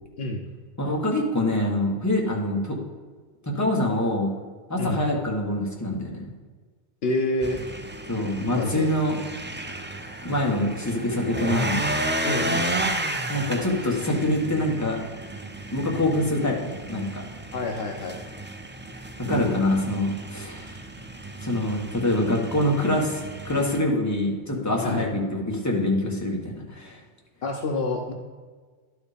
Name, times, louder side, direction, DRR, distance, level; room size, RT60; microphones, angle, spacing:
voice 1, 0.8-2.8 3.5-4.3 4.7-6.2 8.1-9.2 10.2-11.8 13.3-15.0 15.7-17.2 19.3-20.8 21.4-27.0, left 1 dB, 15° left, -1 dB, 1.4 m, -25 dB
voice 2, 7.0-7.6 8.5-8.9 12.2-12.7 17.5-18.2 24.8-25.1 27.4-28.1, left 2 dB, 65° left, 3 dB, 1.0 m, -28 dB
sound 1, 7.4-23.8, right 1 dB, 20° right, 0.3 m, -33 dB
11.5 x 4.9 x 5.1 m, 1.5 s
omnidirectional pair, 1.1 m